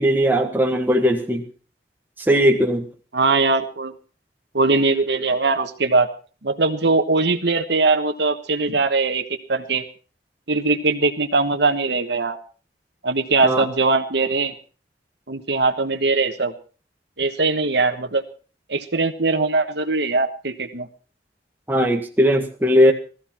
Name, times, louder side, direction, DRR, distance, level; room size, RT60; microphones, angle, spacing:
voice 1, 0.0-1.4 2.2-2.9 13.4-13.7 21.7-22.9, equal, 10° right, 2 dB, 1.7 m, -18 dB
voice 2, 3.1-3.9 4.5-6.1 6.4-9.2 9.5-9.8 10.5-12.4 13.0-14.5 15.3-16.5 17.2-18.2 18.7-20.9, right 3 dB, 70° right, 6 dB, 1.3 m, -21 dB
18.0 x 14.5 x 4.4 m, 0.38 s
head